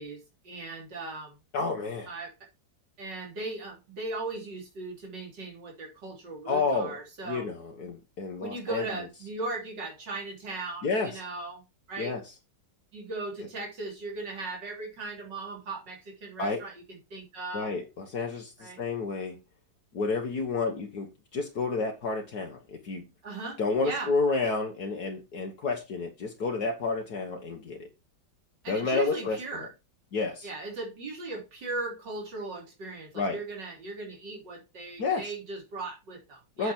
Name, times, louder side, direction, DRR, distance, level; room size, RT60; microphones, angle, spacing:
voice 1, 0.0-1.4 2.1-2.3 3.0-7.5 8.4-11.6 11.9-12.2 12.9-17.7 18.6-18.8 23.2-24.1 28.6-29.7 30.4-36.7, right 3 dB, 75° right, 4.0 m, -38 dB
voice 2, 1.5-2.1 6.5-6.9 7.2-8.9 10.8-11.2 12.0-12.3 16.4-16.6 17.5-19.4 19.9-23.0 23.6-27.9 28.7-29.4 30.1-30.5 33.1-33.4 35.0-35.3 36.6-36.7, left 4 dB, 60° left, 1.8 m, -30 dB
8.2 x 6.9 x 4.4 m
omnidirectional pair, 1.9 m